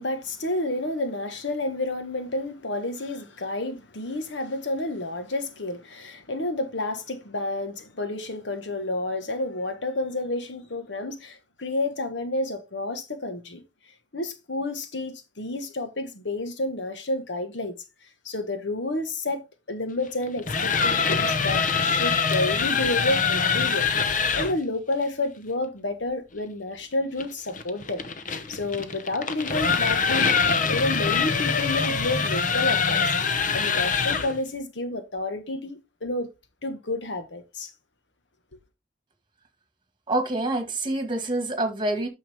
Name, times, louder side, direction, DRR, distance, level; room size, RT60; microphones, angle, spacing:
voice 1, 0.0-13.6 14.1-17.7 18.2-19.4 19.7-28.0 28.5-30.4 30.6-36.3 36.6-37.7, left 2 dB, 80° left, 1.4 m, -30 dB
sound 1, 20.3-24.6 27.2-34.4, left 5 dB, 45° left, 0.9 m, -24 dB
voice 2, 40.1-42.1, right 2 dB, 25° right, 2.0 m, -26 dB
9.1 x 6.4 x 3.5 m
head